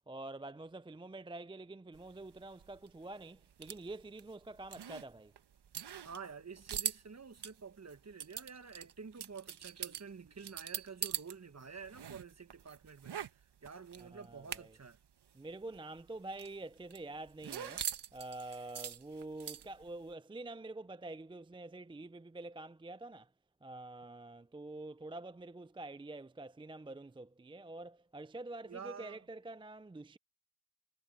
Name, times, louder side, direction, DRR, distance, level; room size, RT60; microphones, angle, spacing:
voice 1, 0.1-5.3 14.0-14.8 15.3-23.3 23.6-30.2, right 2 dB, 10° right, 0.5 m, -47 dB
sound 1, 1.9-11.3 11.6-15.0 15.2-15.3 15.6-19.9, right 8 dB, 65° right, 1.3 m, -43 dB
voice 2, 6.0-13.2 13.6-15.0 28.6-29.2, right 5 dB, 35° right, 1.4 m, -49 dB
cardioid pair, 50°, 43 cm